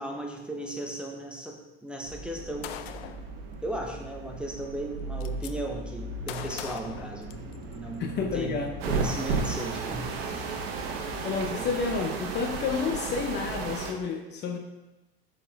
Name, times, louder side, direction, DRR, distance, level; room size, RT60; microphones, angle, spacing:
voice 1, 0.0-2.7 3.6-7.5 7.7-10.5 11.4-11.7, right 1 dB, 5° right, 1 dB, 0.8 m, -36 dB
sound 1, 2.0-13.8, right 3 dB, 50° right, 1.3 m, -37 dB
Gunshot gunfire, 2.6-3.3 4.4-4.5 4.8-5.5 6.3-7.8, left 10 dB, 75° left, 0.5 m, -40 dB
voice 2, 8.0-8.7 11.2-14.6, left 5 dB, 35° left, 4 dB, 0.6 m, -30 dB
sound 2, 8.8-13.9, right 5 dB, 75° right, 1.1 m, -35 dB
7.3 x 4.2 x 4.0 m, 1.0 s
supercardioid pair, 120°, 31 cm